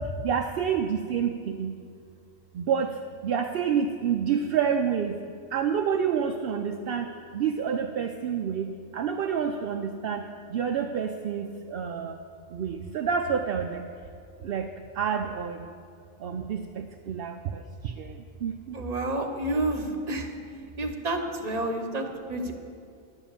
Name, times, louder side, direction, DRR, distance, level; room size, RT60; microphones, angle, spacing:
voice 1, 0.0-1.8 2.5-5.2 5.5-12.2 12.5-13.8 14.4-15.7 16.2-18.8, right 7 dB, 65° right, 4 dB, 0.6 m, -29 dB
voice 2, 18.7-20.3 20.8-22.5, right 1 dB, 35° right, 4 dB, 1.0 m, -29 dB
10.5 x 7.2 x 7.2 m, 2.4 s
omnidirectional pair, 1.4 m